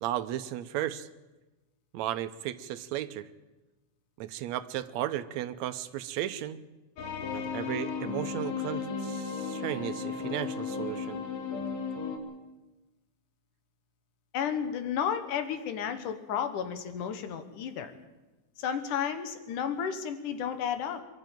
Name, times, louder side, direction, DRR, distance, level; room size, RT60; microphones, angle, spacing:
voice 1, 0.0-1.1 1.9-3.3 4.2-6.6 7.3-11.2, right 12 dB, 75° right, 11 dB, 1.9 m, -35 dB
sound 1, 7.0-12.2, left 5 dB, 60° left, 3.0 m, -35 dB
voice 2, 14.3-17.9 18.6-21.0, left 8 dB, 80° left, 9 dB, 2.9 m, -32 dB
23.0 x 12.5 x 9.1 m, 1.1 s
omnidirectional pair, 3.6 m